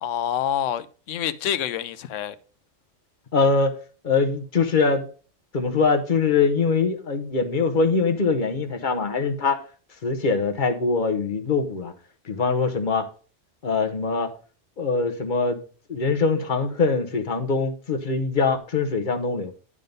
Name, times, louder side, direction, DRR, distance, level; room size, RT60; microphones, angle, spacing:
voice 1, 0.0-2.4, left 10 dB, 85° left, 1.0 m, -27 dB
voice 2, 3.3-3.8 4.0-5.1 5.5-9.6 10.0-11.9 12.3-13.1 13.6-14.3 14.8-15.6 15.9-19.5, left 4 dB, 45° left, 1.0 m, -23 dB
11.0 x 3.7 x 5.2 m
omnidirectional pair, 1.2 m